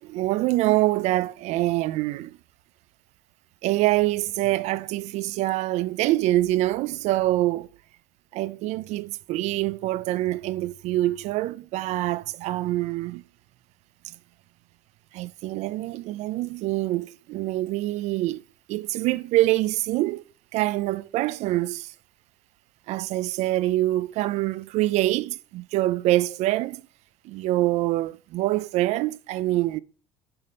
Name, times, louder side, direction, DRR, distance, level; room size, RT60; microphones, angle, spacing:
voice 1, 0.0-2.4 3.6-7.7 8.3-13.2 14.0-14.1 15.1-18.4 18.7-20.2 20.5-21.9 22.9-26.8 27.2-29.8, right 16 dB, 65° right, 0.4 m, -25 dB
6.6 x 5.2 x 5.5 m
cardioid pair, 130°, 13 cm